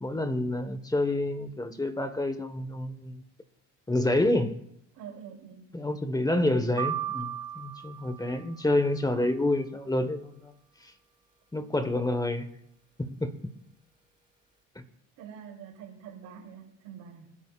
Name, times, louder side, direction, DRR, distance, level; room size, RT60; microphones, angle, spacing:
voice 1, 0.0-3.2 3.9-4.6 5.7-10.5 11.5-12.5 13.0-13.3 14.7-14.8, left 1 dB, 10° left, 1.4 m, -28 dB
voice 2, 4.9-5.7 15.2-17.3, right 8 dB, 80° right, 3.5 m, -45 dB
sound 1, 6.8-8.9, right 10 dB, 15° right, 1.4 m, -36 dB
28.0 x 11.0 x 2.5 m
supercardioid pair, 90°, 31 cm